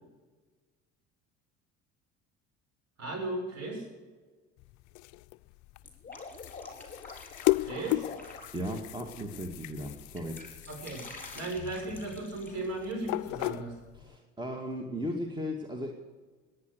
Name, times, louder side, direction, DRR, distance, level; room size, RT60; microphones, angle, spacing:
voice 1, 3.0-3.9 7.6-8.0 10.7-11.0 11.3-13.7, right 2 dB, 45° right, 3 dB, 6.5 m, -36 dB
sound 1, 4.6-14.2, left 22 dB, 55° left, 0.5 m, -36 dB
Drip, 5.8-9.4 9.8-12.9, left 3 dB, 20° left, 4.5 m, -47 dB
voice 2, 8.5-10.4 13.9-15.9, equal, 10° right, 2 dB, 2.3 m, -36 dB
19.5 x 10.0 x 6.6 m, 1.4 s
hypercardioid pair, 60°, 37 cm